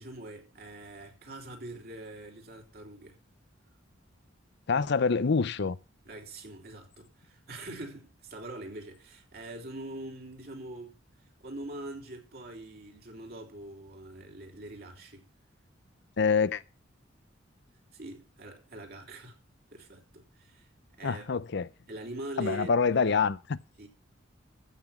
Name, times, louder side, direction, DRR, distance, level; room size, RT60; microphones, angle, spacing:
voice 1, 0.0-3.2 6.0-10.9 11.4-15.3 17.9-19.4 19.7-20.7 21.0-21.3 21.9-22.7 23.8-23.9, right 1 dB, 50° right, 3.4 m, -43 dB
voice 2, 4.7-5.8 16.2-16.6 21.0-21.7 22.4-23.6, left 5 dB, 60° left, 0.6 m, -26 dB
15.0 x 5.9 x 7.0 m
head